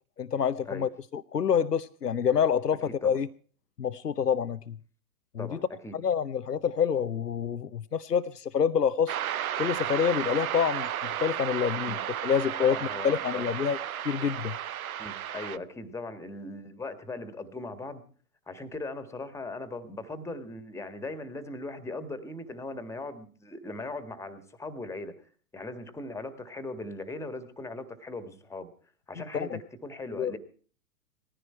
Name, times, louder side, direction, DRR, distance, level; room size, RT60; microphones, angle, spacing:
voice 1, 0.2-3.3 3.8-4.8 5.3-5.6 5.9-9.2 9.6-12.0 12.2-12.8 13.0-13.8 14.0-14.6 29.3-29.6 30.2-30.4, left 7 dB, 85° left, 13 dB, 0.8 m, -27 dB
voice 2, 5.4-6.0 11.9-12.0 12.6-13.4 15.0-18.0 18.5-25.1 25.5-28.7 29.1-30.4, left 2 dB, 5° left, 12 dB, 1.7 m, -39 dB
sound 1, 9.1-15.6, right 10 dB, 65° right, 0.7 m, -33 dB
19.5 x 15.0 x 4.4 m, 0.43 s
figure-of-eight pair, 110°, 46 cm